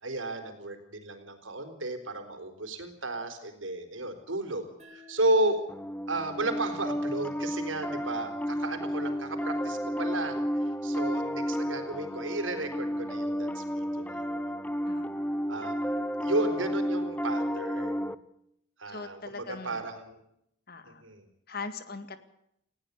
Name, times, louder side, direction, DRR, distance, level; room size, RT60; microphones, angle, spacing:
voice 1, 0.0-4.7 4.9-5.6 6.1-14.5 15.5-18.2 18.8-20.2 20.8-21.3, right 2 dB, 85° right, 8 dB, 4.4 m, -33 dB
sound 1, 4.8-8.0, left 4 dB, 35° right, 5.7 m, -58 dB
Piano, 5.7-18.1, equal, 10° left, 0.7 m, -32 dB
voice 2, 14.9-15.4 18.9-19.8 20.7-21.0 21.5-22.2, left 4 dB, 50° left, 11 dB, 2.1 m, -41 dB
19.5 x 17.0 x 8.4 m, 0.76 s
head